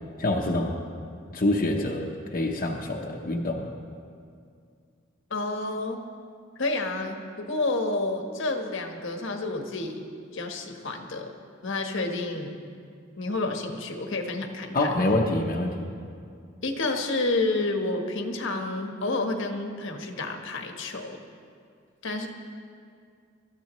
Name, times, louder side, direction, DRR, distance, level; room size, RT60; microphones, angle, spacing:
voice 1, 0.2-0.7 1.3-2.1 2.3-3.7 14.7-15.7, left 1 dB, 45° left, -1 dB, 1.0 m, -25 dB
voice 2, 5.3-6.0 6.6-10.0 10.3-11.3 11.6-12.5 13.2-14.9 16.6-21.2 22.0-22.3, left 2 dB, 65° left, 4 dB, 1.3 m, -29 dB
23.5 x 13.5 x 3.1 m, 2.3 s
head